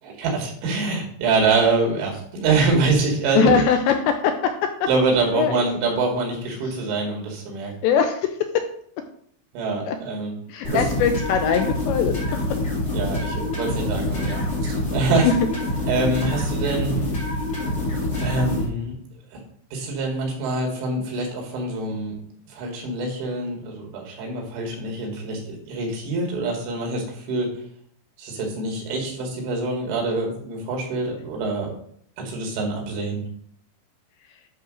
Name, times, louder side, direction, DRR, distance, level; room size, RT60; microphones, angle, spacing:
voice 1, 0.0-3.6 4.9-7.7 9.5-10.3 10.7-10.8 12.9-15.3 15.9-16.9 18.2-18.9 19.3-19.4 19.7-22.2 22.5-27.5 28.2-31.7 32.2-33.2, right 3 dB, 75° right, 0 dB, 4.6 m, -25 dB
voice 2, 3.3-4.5 5.3-5.8 6.7-6.8 7.8-8.4 9.9-10.0 10.5-12.2 15.2-15.4, left 6 dB, 85° left, 6 dB, 2.6 m, -21 dB
sound 1, 10.6-18.6, left 1 dB, 35° left, 1.1 m, -26 dB
10.5 x 3.8 x 6.3 m, 0.62 s
omnidirectional pair, 5.5 m